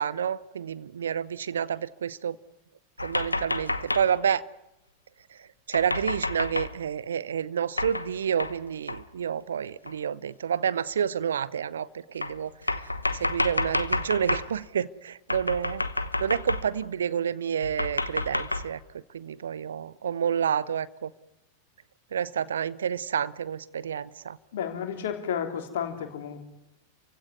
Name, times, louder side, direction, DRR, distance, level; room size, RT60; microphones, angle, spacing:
voice 1, 0.0-2.4 3.0-4.4 5.7-12.5 13.2-15.8 16.2-21.1 22.1-24.4, right 8 dB, 65° right, 18 dB, 0.8 m, -29 dB
sound 1, 3.0-4.2 5.7-6.7 7.8-8.1 8.4-8.6 8.9-9.0 9.9-10.0 11.0-11.1 12.2-14.5 15.3-16.9 17.6-18.7, left 2 dB, 85° left, 1.1 m, -30 dB
voice 2, 24.5-26.4, left 8 dB, 55° left, 5 dB, 3.5 m, -32 dB
28.5 x 16.5 x 9.6 m, 0.91 s
figure-of-eight pair, 90°, 0 cm